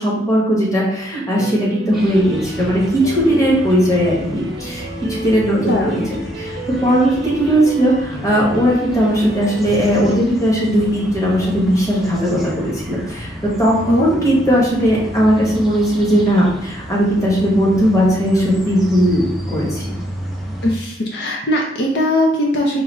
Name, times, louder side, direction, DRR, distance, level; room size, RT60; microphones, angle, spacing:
voice 1, 0.0-19.8, equal, 15° left, -5 dB, 1.1 m, -17 dB
sound 1, 1.4-10.2, right 1 dB, 75° right, 0.7 m, -32 dB
sound 2, 1.9-20.8, equal, ahead, 0.4 m, -32 dB
voice 2, 5.6-6.1 13.8-14.2 20.6-22.8, left 1 dB, 60° left, -1 dB, 0.5 m, -19 dB
4.8 x 2.4 x 3.0 m, 0.82 s
head